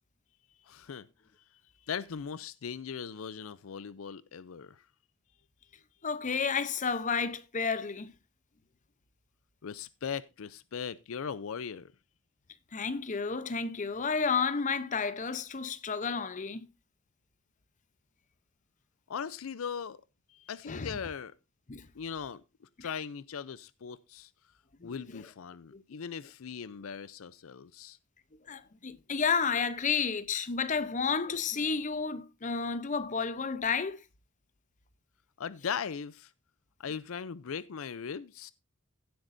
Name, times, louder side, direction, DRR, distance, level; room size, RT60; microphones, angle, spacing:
voice 1, 0.6-1.1 1.8-4.8 9.6-11.9 19.1-20.0 20.3-21.3 21.9-22.4 22.8-24.3 24.8-28.0 35.4-36.3 36.8-38.5, left 6 dB, 80° left, 0.5 m, -39 dB
voice 2, 6.0-8.1 12.7-16.7 20.7-20.9 21.7-21.9 22.8-22.9 24.8-25.2 25.7-25.8 28.5-34.0, left 5 dB, 35° left, 0.7 m, -31 dB
16.0 x 7.9 x 2.6 m
head